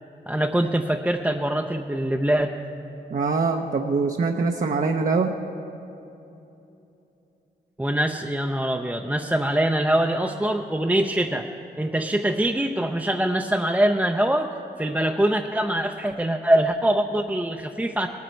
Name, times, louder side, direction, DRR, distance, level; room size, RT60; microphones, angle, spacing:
voice 1, 0.3-2.5 7.8-11.5 11.8-14.5 14.8-18.1, right 1 dB, 10° right, 2 dB, 0.5 m, -23 dB
voice 2, 3.1-5.4, right 4 dB, 50° right, 3 dB, 0.7 m, -23 dB
19.0 x 9.4 x 4.4 m, 2.9 s
cardioid pair, 75°, 18 cm